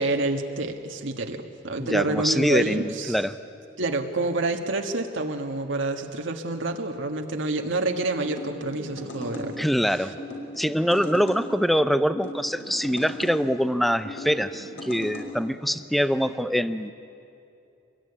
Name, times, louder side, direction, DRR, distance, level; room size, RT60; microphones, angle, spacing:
voice 1, 0.0-3.2 3.8-10.1, right 2 dB, 70° right, 3 dB, 1.6 m, -28 dB
voice 2, 1.8-3.4 9.6-10.1 10.6-16.9, equal, ahead, 12 dB, 0.7 m, -24 dB
sound 1, 8.2-9.5 10.2-11.4 12.1-13.4 14.1-15.3, left 1 dB, 65° left, 5.2 m, -38 dB
26.0 x 22.0 x 9.8 m, 2.7 s
head